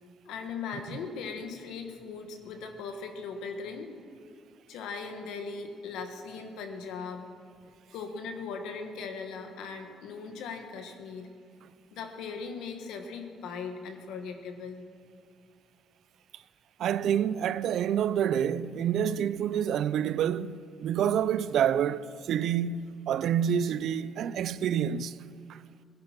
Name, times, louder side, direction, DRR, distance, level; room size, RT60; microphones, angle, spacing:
voice 1, 0.2-3.9 4.7-7.3 7.9-11.3 11.9-14.8, left 5 dB, 85° left, 1.6 m, -39 dB
voice 2, 16.8-25.2 25.5-25.6, right 9 dB, 70° right, 0.4 m, -28 dB
17.0 x 10.5 x 6.0 m
cardioid pair, 90°, 0 cm